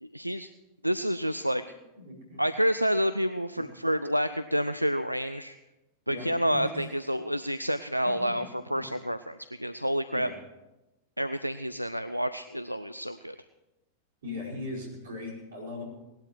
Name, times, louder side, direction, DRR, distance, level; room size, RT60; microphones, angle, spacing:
voice 1, 0.0-0.5 0.8-1.6 2.4-5.6 6.1-8.4 8.7-10.3 11.2-13.4, equal, 90° right, 12 dB, 0.4 m, -29 dB
voice 2, 1.9-2.4 3.6-3.7 6.1-6.9 8.0-8.4 8.7-8.9 10.1-10.3 14.2-15.8, left 2 dB, 65° right, -2 dB, 5.0 m, -39 dB
18.5 x 12.0 x 4.7 m, 1.0 s
figure-of-eight pair, 90°, 0 cm